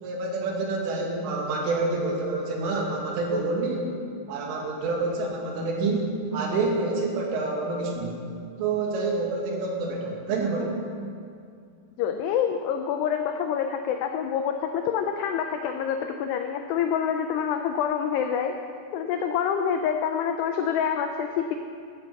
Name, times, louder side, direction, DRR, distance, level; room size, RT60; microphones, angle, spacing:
voice 1, 0.0-3.8 4.3-8.1 8.6-10.8, right 3 dB, 80° right, 0 dB, 4.5 m, -27 dB
voice 2, 12.0-18.5 18.9-21.6, left 8 dB, 90° left, 6 dB, 2.3 m, -27 dB
14.5 x 12.5 x 5.4 m, 2.3 s
omnidirectional pair, 5.6 m